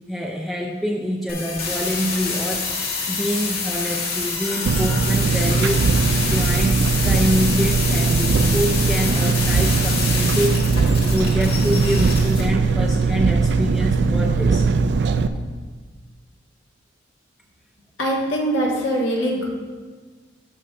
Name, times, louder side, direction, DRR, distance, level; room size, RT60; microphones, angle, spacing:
voice 1, 0.1-2.7 3.1-10.7 11.1-14.7, equal, ahead, -2 dB, 0.4 m, -26 dB
sound 1, 1.3-12.4, left 4 dB, 55° left, 2.0 m, -27 dB
Engine, 4.7-15.3, right 4 dB, 60° right, 0.4 m, -19 dB
voice 2, 18.0-19.5, right 1 dB, 85° left, -2 dB, 1.6 m, -22 dB
15.5 x 5.4 x 2.5 m, 1.5 s
head